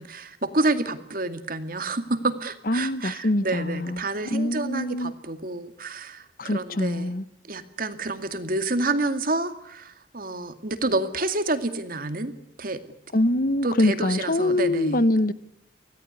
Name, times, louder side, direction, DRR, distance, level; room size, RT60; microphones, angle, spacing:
voice 1, 0.0-7.1 7.5-12.8 13.6-15.1, right 2 dB, 50° right, 2.2 m, -29 dB
voice 2, 2.7-4.0 4.3-5.1 6.4-7.2 13.1-15.3, left 1 dB, 50° left, 1.1 m, -24 dB
25.0 x 17.5 x 9.6 m
head